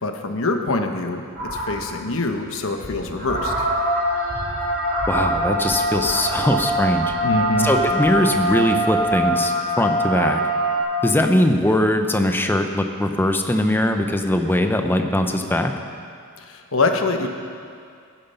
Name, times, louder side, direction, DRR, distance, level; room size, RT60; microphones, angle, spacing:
voice 1, 0.0-1.2 1.7-3.5 7.2-7.7 16.4-17.3, left 3 dB, 65° left, 5 dB, 1.2 m, -24 dB
sound 1, 1.4-1.9 2.3-2.5 2.8-10.8, right 1 dB, 50° right, 3.6 m, -23 dB
voice 2, 5.1-7.1 7.6-10.4 11.0-15.7, left 1 dB, 10° left, 5 dB, 0.8 m, -20 dB
16.5 x 11.0 x 5.7 m, 2.3 s
head